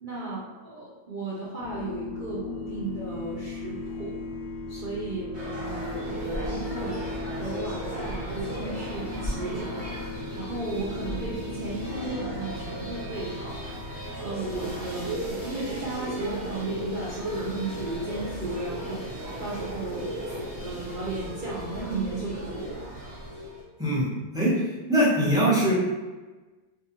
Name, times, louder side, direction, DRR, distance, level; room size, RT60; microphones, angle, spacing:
voice 1, 0.0-4.2 4.7-9.9 10.3-13.6 14.2-20.1 20.4-23.2, right 3 dB, 80° right, -8 dB, 0.4 m, -34 dB
sound 1, 1.6-15.1, left 3 dB, 65° left, 0.6 m, -38 dB
sound 2, 5.3-23.6, equal, 30° right, 1.0 m, -36 dB
voice 2, 24.9-25.7, right 1 dB, 5° right, -9 dB, 0.4 m, -21 dB
2.6 x 2.4 x 2.9 m, 1.3 s
omnidirectional pair, 1.6 m